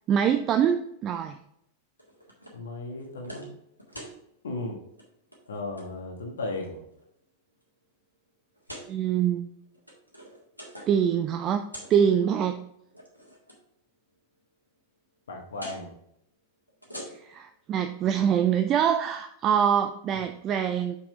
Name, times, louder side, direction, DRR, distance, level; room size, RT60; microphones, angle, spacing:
voice 1, 0.1-1.4 8.9-9.5 10.9-11.6 11.9-12.7 17.1-21.0, right 8 dB, 30° right, 8 dB, 0.5 m, -24 dB
sound 1, 2.0-2.6 3.0-3.5 3.8-4.2 4.8-5.0 5.3-5.9 6.5-7.0 7.6-7.7 8.5-8.9 9.7-11.0 11.3-12.0 12.8-13.6 15.5-15.8 16.7-17.4, equal, 90° left, 1.7 m, -44 dB
voice 2, 2.5-3.5 4.4-4.8 5.5-6.8 15.3-15.9, left 2 dB, 65° left, 2 dB, 1.4 m, -35 dB
6.2 x 6.0 x 3.3 m, 0.76 s
figure-of-eight pair, 90°, 0 cm